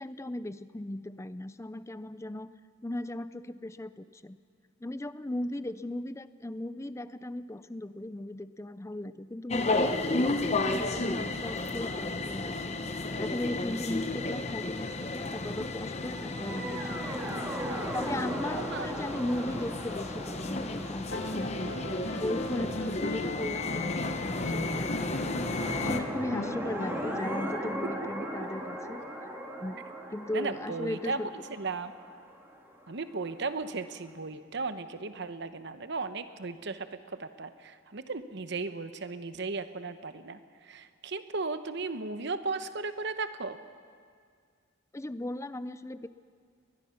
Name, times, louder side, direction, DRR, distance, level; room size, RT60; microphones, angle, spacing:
voice 1, 0.0-2.5 2.8-4.4 4.8-12.8 13.2-17.0 17.9-21.8 22.1-25.3 25.8-29.0 29.6-29.8 30.1-31.3 44.9-46.1, left 1 dB, 15° left, 14 dB, 0.4 m, -37 dB
sound 1, 9.5-26.0, left 2 dB, 30° left, 0.9 m, -33 dB
sound 2, 16.1-23.3 25.2-33.0, equal, 10° right, 2.2 m, -38 dB
voice 2, 18.5-18.9 30.3-31.2 31.6-31.9 32.9-43.6, right 3 dB, 55° right, 10 dB, 0.9 m, -36 dB
sound 3, 21.1-27.5 29.0-29.1, left 1 dB, 55° left, 1.8 m, -37 dB
21.5 x 21.0 x 5.8 m, 2.1 s
head